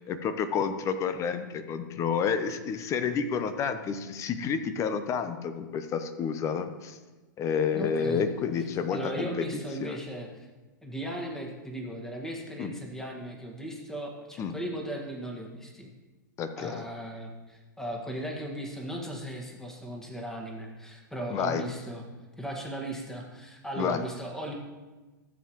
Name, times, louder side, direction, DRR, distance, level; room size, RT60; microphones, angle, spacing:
voice 1, 0.1-7.0 7.4-9.4 9.8-10.0 12.6-12.7 14.4-14.5 16.4-16.8 21.3-21.6 23.8-24.0, left 6 dB, 30° left, 10 dB, 0.7 m, -30 dB
voice 2, 7.7-8.3 8.9-10.5 10.8-15.9 16.6-22.0 22.4-24.5, right 1 dB, 5° left, 0 dB, 1.7 m, -37 dB
13.5 x 7.4 x 3.0 m, 1.2 s
hypercardioid pair, 110°, 11 cm